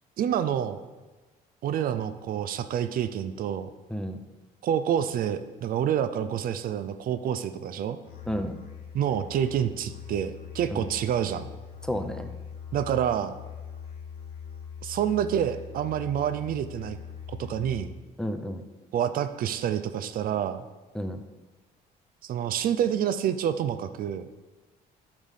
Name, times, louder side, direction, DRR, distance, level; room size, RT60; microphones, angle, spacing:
voice 1, 0.2-0.8 1.6-3.7 4.6-8.0 8.9-11.5 12.7-13.3 14.8-17.0 17.3-17.9 18.9-20.6 22.2-24.3, right 9 dB, 60° right, 11 dB, 0.5 m, -28 dB
Musical instrument, 8.0-18.0, left 7 dB, 65° left, 1.6 m, -42 dB
voice 2, 8.3-8.6 10.7-10.9 11.8-12.3 18.2-18.6 20.9-21.2, equal, 5° left, 6 dB, 0.6 m, -31 dB
8.8 x 3.7 x 6.4 m, 1.2 s
cardioid pair, 110°, 17 cm